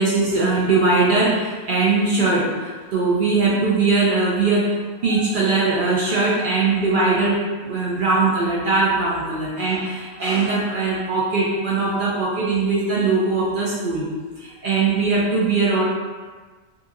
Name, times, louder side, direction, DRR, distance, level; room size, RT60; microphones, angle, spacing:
voice 1, 0.0-14.1 14.4-15.8, right 3 dB, 65° right, -6 dB, 0.5 m, -20 dB
2.7 x 2.5 x 2.4 m, 1.4 s
omnidirectional pair, 1.4 m